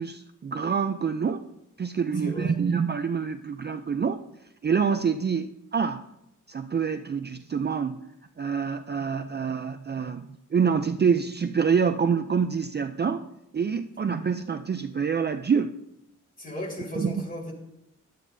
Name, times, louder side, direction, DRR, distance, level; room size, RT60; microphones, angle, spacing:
voice 1, 0.0-1.5 1.8-4.2 4.6-6.0 6.5-8.0 8.4-13.3 13.5-15.7 17.0-17.2, right 6 dB, 35° right, 8 dB, 0.4 m, -26 dB
voice 2, 2.2-2.6 16.4-17.5, left 1 dB, 25° left, -2 dB, 4.2 m, -36 dB
16.5 x 12.0 x 2.7 m, 0.81 s
wide cardioid pair, 135°, 31 cm